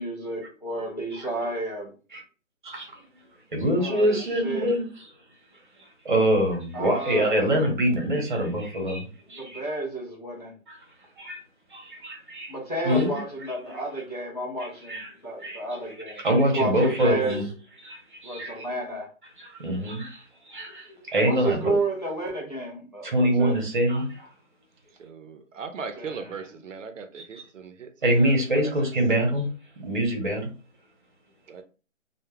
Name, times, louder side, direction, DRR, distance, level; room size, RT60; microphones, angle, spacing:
voice 1, 0.0-1.8 3.8-4.8 6.7-7.4 9.4-10.5 12.5-17.4 18.2-19.1 21.2-23.6 26.0-26.2, right 2 dB, 35° left, 0.4 m, -31 dB
voice 2, 3.5-5.1 6.0-9.6 10.7-10.8 11.2-11.4 11.7-12.5 12.8-13.2 13.6-13.8 14.6-15.1 15.4-15.6 15.9-16.0 16.2-17.4 17.8-18.7 19.4-21.7 23.0-24.3 27.1-27.2 28.0-29.5 29.8-30.5, right 1 dB, 40° right, 0.8 m, -25 dB
voice 3, 25.0-28.7 31.5-31.6, right 5 dB, 70° right, 0.5 m, -39 dB
2.2 x 2.1 x 3.1 m
hypercardioid pair, 170°, 39 cm